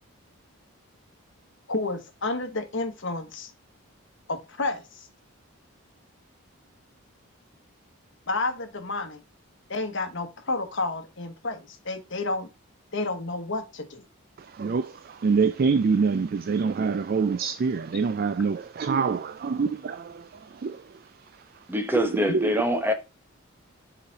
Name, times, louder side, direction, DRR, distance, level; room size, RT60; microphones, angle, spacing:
voice 1, 1.7-3.5 4.3-4.8 8.3-9.2 9.7-12.5 12.9-14.0, left 2 dB, 55° left, 1.2 m, -30 dB
voice 2, 14.5-20.2 20.6-20.8 22.3-22.5, right 5 dB, 45° right, 0.3 m, -25 dB
voice 3, 21.7-22.9, equal, 10° right, 0.9 m, -24 dB
5.5 x 5.0 x 3.9 m
head